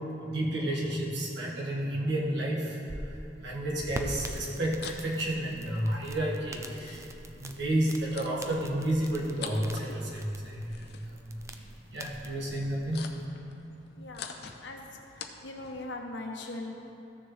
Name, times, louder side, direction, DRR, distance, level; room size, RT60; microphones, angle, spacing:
voice 1, 0.2-7.1 7.4-11.3 11.9-13.0, right 1 dB, 70° right, -4 dB, 1.7 m, -31 dB
sound 1, 2.7-13.3, right 1 dB, 15° right, 0.4 m, -44 dB
sound 2, 4.4-15.8, left 6 dB, 60° left, 0.6 m, -48 dB
voice 2, 14.0-14.8 15.4-16.7, left 2 dB, 80° left, 1 dB, 1.0 m, -40 dB
14.0 x 6.7 x 3.2 m, 2.8 s
head